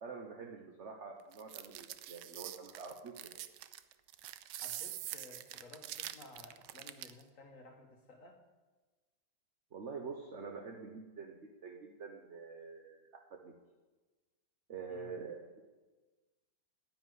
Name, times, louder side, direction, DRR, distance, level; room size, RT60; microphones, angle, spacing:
voice 1, 0.0-3.4 9.7-13.5 14.7-15.6, right 5 dB, 45° right, 3 dB, 1.2 m, -46 dB
sound 1, 1.3-7.2, right 13 dB, 75° right, 1.2 m, -45 dB
voice 2, 4.5-8.4 14.9-15.2, left 3 dB, 45° left, 2 dB, 2.0 m, -56 dB
10.0 x 9.4 x 9.5 m, 1.3 s
omnidirectional pair, 1.9 m